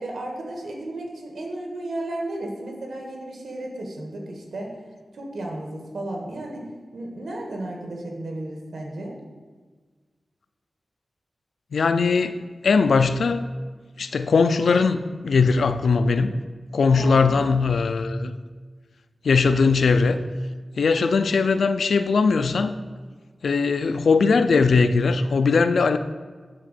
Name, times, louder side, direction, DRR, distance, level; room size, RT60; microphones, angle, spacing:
voice 1, 0.0-4.7 5.1-6.6 6.9-9.1 16.8-17.4, right 1 dB, 85° right, 0 dB, 1.8 m, -34 dB
voice 2, 11.7-13.5 14.0-16.3 16.7-18.3 19.2-20.2 20.8-22.7 23.4-26.0, left 4 dB, 90° left, 10 dB, 0.5 m, -20 dB
10.5 x 3.6 x 6.8 m, 1.5 s
wide cardioid pair, 80°, 0 cm